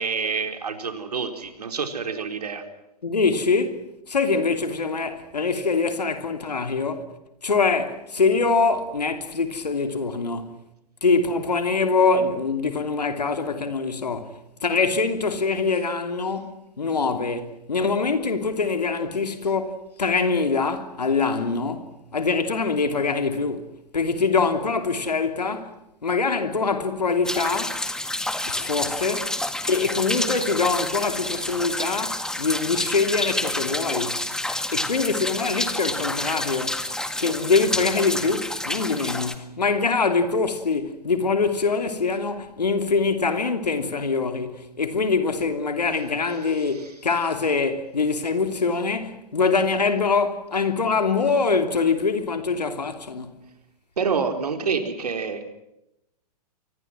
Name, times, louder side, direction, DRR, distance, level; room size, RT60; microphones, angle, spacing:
voice 1, 0.0-2.6 46.7-46.9 54.0-55.4, right 5 dB, 70° right, 4.3 m, -27 dB
voice 2, 3.0-7.2 7.4-10.5 11.0-27.8 28.5-34.3 34.7-36.8 37.2-53.4, left 4 dB, 75° left, 3.1 m, -24 dB
sound 1, 27.2-39.3, left 1 dB, 5° left, 1.8 m, -29 dB
29.5 x 24.5 x 6.1 m
figure-of-eight pair, 105°, 21 cm